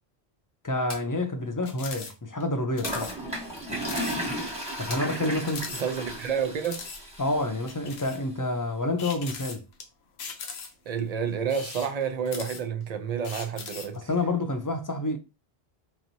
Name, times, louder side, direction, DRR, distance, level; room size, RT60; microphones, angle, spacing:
voice 1, 0.6-3.1 4.8-5.7 7.2-9.6 13.9-15.2, left 2 dB, 30° left, 0.3 m, -28 dB
sound 1, 0.8-1.1 2.8-3.1 4.9-5.1, left 2 dB, 60° left, 1.3 m, -38 dB
sound 2, 1.6-2.1 2.4-2.5 2.8-3.2 3.5-3.6 3.8-4.2 4.6-4.7 5.4-6.2 6.6-7.0 7.7-8.2 9.0-9.8 10.2-10.9 11.4-12.8 13.2-14.0, left 5 dB, 90° left, 1.0 m, -39 dB
Toilet flush, 2.8-7.9, equal, 5° right, 1.1 m, -34 dB
voice 2, 5.2-6.8 10.9-14.1, right 7 dB, 55° right, 0.5 m, -30 dB
4.6 x 2.9 x 2.6 m
omnidirectional pair, 1.0 m